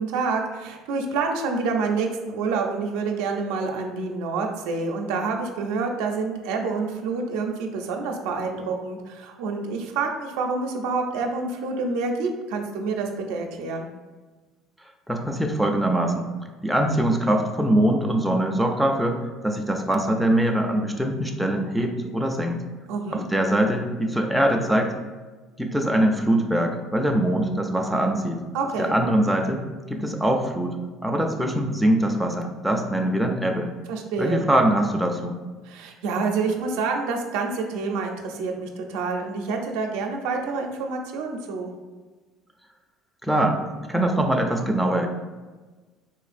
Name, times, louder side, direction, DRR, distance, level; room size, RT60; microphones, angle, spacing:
voice 1, 0.0-13.9 22.9-23.2 28.5-28.9 33.9-34.5 35.6-41.7, right 4 dB, 85° right, 2 dB, 0.5 m, -27 dB
voice 2, 15.1-16.3 16.6-19.2 19.4-22.6 23.1-24.9 25.6-28.4 28.8-29.6 29.9-30.8 31.0-33.7 34.2-35.3 43.2-43.6 43.9-45.1, right 1 dB, ahead, 1 dB, 0.3 m, -22 dB
4.1 x 2.5 x 2.4 m, 1.3 s
cardioid pair, 125°, 0 cm